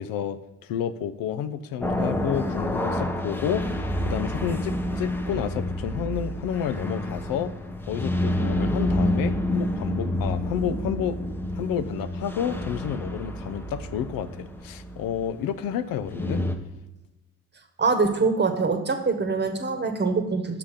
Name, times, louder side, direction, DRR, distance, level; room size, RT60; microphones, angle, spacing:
voice 1, 0.0-3.7 4.0-7.5 7.9-11.2 11.5-16.4, left 9 dB, 80° left, 11 dB, 0.5 m, -30 dB
sound 1, 1.8-16.5, left 1 dB, 5° left, 0.7 m, -29 dB
voice 2, 17.8-20.6, right 4 dB, 30° right, 6 dB, 1.1 m, -24 dB
5.8 x 5.8 x 5.0 m, 1.1 s
cardioid pair, 90°, 34 cm